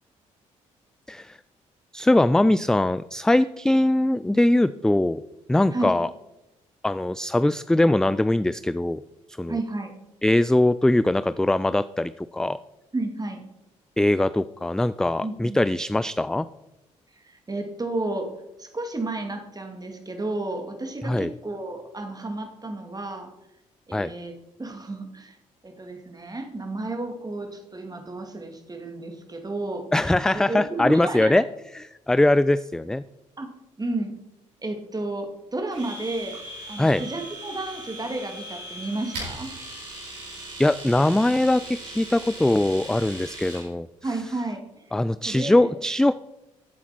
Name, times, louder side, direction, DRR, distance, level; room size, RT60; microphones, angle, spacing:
voice 1, 1.9-5.2 5.5-6.1 6.8-9.0 9.4-9.5 10.2-12.6 14.0-16.5 21.0-21.3 23.9-24.1 29.9-31.4 31.7-33.0 36.8-37.0 40.6-43.9 44.9-46.1, left 1 dB, 5° left, 15 dB, 0.3 m, -21 dB
voice 2, 9.5-9.9 12.9-13.4 15.2-15.6 17.1-18.3 18.6-23.3 23.9-25.4 25.6-29.9 30.2-31.3 33.4-33.5 33.8-34.1 34.6-36.4 36.7-39.5 44.0-44.8 45.3-45.8, right 2 dB, 25° right, 5 dB, 2.2 m, -32 dB
Domestic sounds home sounds, 35.7-43.7, right 1 dB, 75° right, 4.3 m, -39 dB
14.0 x 8.2 x 4.3 m, 0.95 s
figure-of-eight pair, 40°, 17 cm